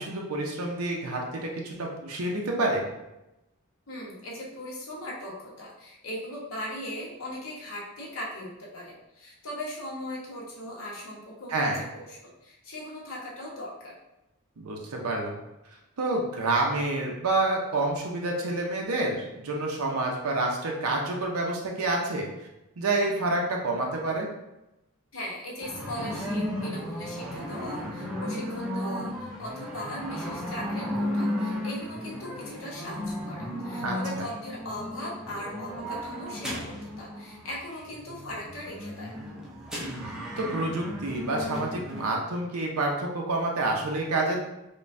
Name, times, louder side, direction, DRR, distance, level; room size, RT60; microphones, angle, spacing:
voice 1, 0.0-2.8 11.5-11.8 14.6-15.3 16.0-22.3 22.8-24.3 33.8-34.0 39.8-44.4, right 2 dB, 80° right, 0 dB, 0.6 m, -28 dB
voice 2, 3.9-14.0 25.1-39.1, left 1 dB, 60° left, -4 dB, 1.0 m, -39 dB
sound 1, 25.6-42.1, left 1 dB, 5° right, 0.5 m, -34 dB
5.2 x 2.2 x 2.6 m, 0.92 s
head